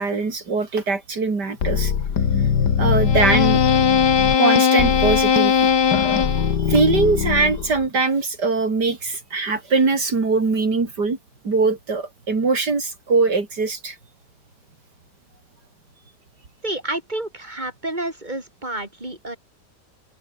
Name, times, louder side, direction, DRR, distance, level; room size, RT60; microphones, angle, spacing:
voice 1, 0.0-1.9 2.8-3.6 4.4-5.7 6.6-11.2 11.4-14.0, right 4 dB, 80° right, 4.0 m, -21 dB
sound 1, 1.6-7.9, left 7 dB, 80° left, 2.2 m, -19 dB
voice 2, 16.6-19.4, right 1 dB, 25° right, 6.6 m, -29 dB
omnidirectional pair, 1.8 m